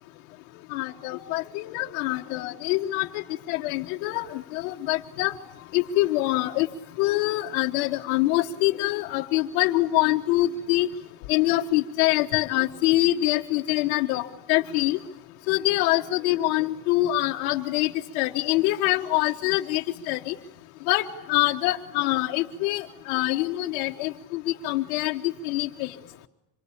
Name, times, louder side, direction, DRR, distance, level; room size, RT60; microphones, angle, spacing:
voice 1, 0.7-3.2 3.5-5.3 5.7-6.7 7.0-10.9 11.3-14.2 14.5-15.0 15.5-20.3 20.9-21.0 21.3-25.9, left 17 dB, 60° left, 0 dB, 1.4 m, -25 dB
26.0 x 23.5 x 8.6 m, 0.86 s
cardioid pair, 175°, 46 cm